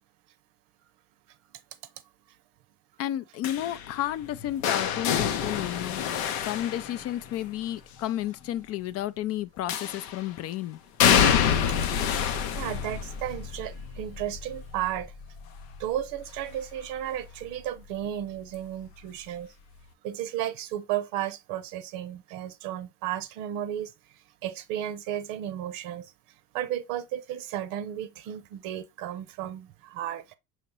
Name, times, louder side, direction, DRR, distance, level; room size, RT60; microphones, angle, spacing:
voice 1, 3.0-10.8, left 13 dB, 50° left, 0.4 m, -32 dB
sound 1, 3.4-7.5 9.7-10.3 11.0-16.8 17.2-17.6 18.8-18.9, left 8 dB, 90° left, 0.7 m, -27 dB
voice 2, 12.5-15.1 15.8-19.5 20.0-23.9 24.4-26.1 26.5-30.4, right 11 dB, 75° right, 0.7 m, -33 dB
5.7 x 3.0 x 3.0 m
supercardioid pair, 100°, 32 cm